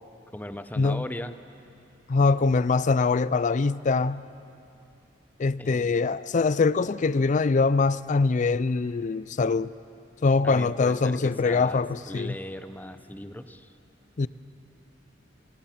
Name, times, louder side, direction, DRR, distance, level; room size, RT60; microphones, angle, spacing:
voice 1, 0.3-1.3 5.6-6.1 10.4-13.7, left 1 dB, 10° left, 0.7 m, -38 dB
voice 2, 2.1-4.2 5.4-9.7 10.2-12.3 14.2-14.3, left 4 dB, 45° left, 0.4 m, -23 dB
26.0 x 21.0 x 5.9 m
head